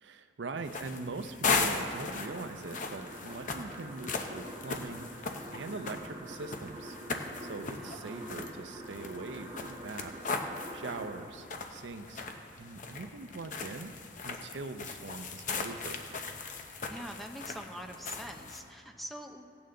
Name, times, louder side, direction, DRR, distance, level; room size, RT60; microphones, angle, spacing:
voice 1, 0.0-7.0 7.4-12.2 12.6-13.9 14.2-16.1, right 3 dB, 80° right, 9 dB, 0.6 m, -42 dB
sound 1, 0.6-18.6, left 4 dB, 45° left, 0.7 m, -38 dB
sound 2, 1.8-11.3, right 1 dB, 25° right, 1.4 m, -46 dB
voice 2, 5.9-6.3 7.8-8.5 16.9-19.5, equal, ahead, 3 dB, 0.6 m, -45 dB
16.5 x 8.8 x 3.8 m, 2.7 s
head